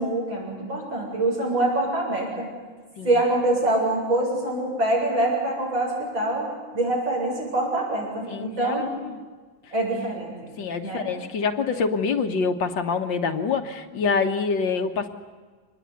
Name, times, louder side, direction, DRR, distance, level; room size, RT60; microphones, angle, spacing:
voice 1, 0.0-2.5 3.0-8.9 9.7-10.5 10.8-11.1, right 2 dB, 80° right, -2 dB, 8.3 m, -25 dB
voice 2, 8.3-9.2 10.6-15.1, left 5 dB, 70° left, 7 dB, 2.1 m, -26 dB
25.5 x 20.0 x 9.7 m, 1.4 s
omnidirectional pair, 2.1 m